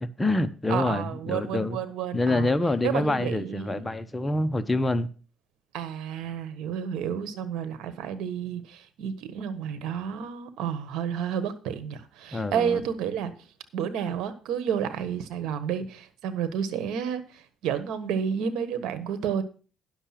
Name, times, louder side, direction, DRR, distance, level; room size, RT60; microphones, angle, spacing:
voice 1, 0.0-1.8 2.1-5.1 12.3-12.8, left 2 dB, 15° left, 0.9 m, -26 dB
voice 2, 0.7-2.5 2.8-3.9 5.7-13.3 13.7-19.4, right 8 dB, 85° right, 1.3 m, -31 dB
10.0 x 6.6 x 5.8 m
cardioid pair, 85°, 0 cm